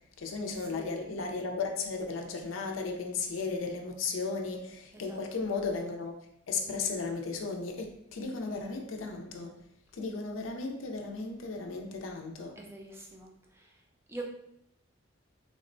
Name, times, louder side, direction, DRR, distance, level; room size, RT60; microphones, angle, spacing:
voice 1, 0.2-6.1 6.5-9.5 9.9-12.6, left 4 dB, 80° left, 3 dB, 0.5 m, -35 dB
voice 2, 12.6-13.8 14.1-14.2, right 2 dB, 10° right, 0 dB, 0.4 m, -44 dB
3.5 x 2.1 x 2.5 m, 0.75 s
head